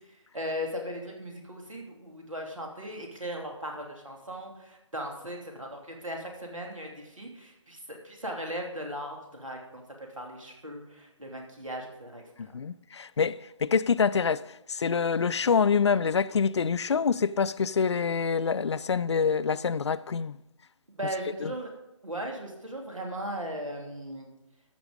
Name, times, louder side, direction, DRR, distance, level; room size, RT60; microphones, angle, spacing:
voice 1, 0.3-9.8 10.2-12.2 20.9-21.7 22.0-24.3, equal, 90° right, 2.9 m, -37 dB
voice 2, 12.4-20.4 21.4-21.5, left 6 dB, 60° left, 0.4 m, -26 dB
13.5 x 6.2 x 5.2 m
figure-of-eight pair, 150°, 16 cm